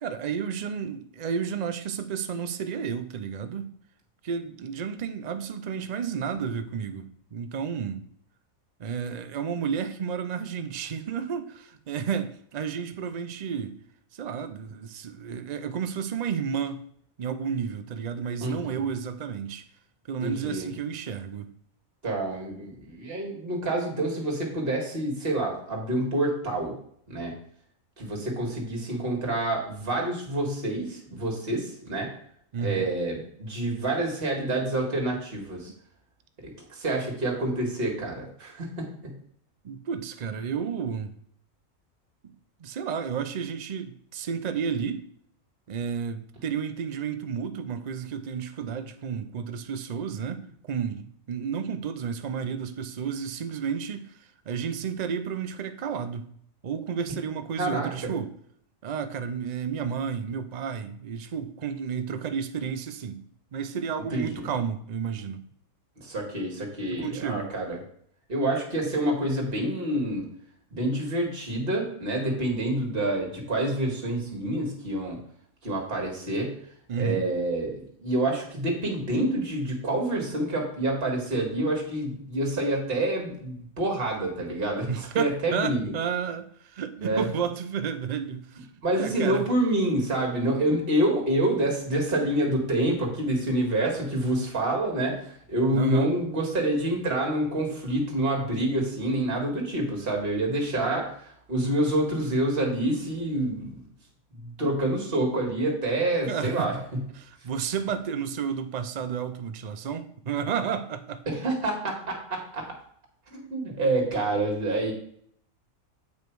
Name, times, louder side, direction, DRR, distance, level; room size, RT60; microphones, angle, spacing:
voice 1, 0.0-3.7 4.2-8.0 8.8-13.8 14.1-16.8 17.2-19.6 20.1-21.5 32.5-32.9 39.6-41.1 42.2-42.3 42.6-45.0 45.7-56.3 56.6-58.3 58.8-63.2 63.5-65.4 66.9-67.5 76.9-77.3 84.9-89.5 95.7-96.1 106.3-106.7 107.2-111.2, right 7 dB, 60° right, 0.4 m, -32 dB
voice 2, 18.4-18.8 20.2-20.7 22.0-26.7 27.1-27.3 28.0-32.1 32.6-35.7 36.4-39.1 57.6-58.1 64.1-64.5 66.0-67.8 68.3-70.3 70.7-75.2 75.6-76.6 77.0-85.9 87.0-87.3 88.8-103.8 104.4-106.8 111.3-112.7 113.3-114.9, right 1 dB, 40° right, 2.0 m, -27 dB
8.1 x 5.1 x 4.6 m
omnidirectional pair, 1.5 m